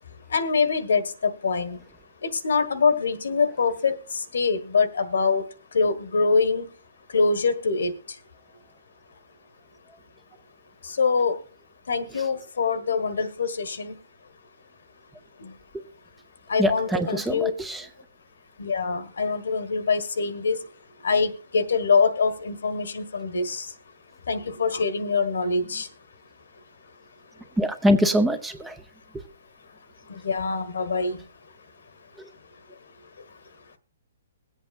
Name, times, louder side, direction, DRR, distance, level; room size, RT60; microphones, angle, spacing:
voice 1, 0.3-1.8 2.2-6.7 7.1-8.2 10.8-11.4 11.9-14.0 15.4-15.5 16.5-17.5 18.6-20.7 21.0-23.7 24.3-25.9 30.0-31.3 32.7-32.8 33.2-33.4, left 4 dB, 90° left, 12 dB, 1.5 m, -24 dB
voice 2, 16.6-17.8 27.6-28.7 29.1-29.2, equal, 5° right, 9 dB, 0.7 m, -23 dB
22.0 x 8.1 x 2.5 m, 0.38 s
hypercardioid pair, 160°, 0 cm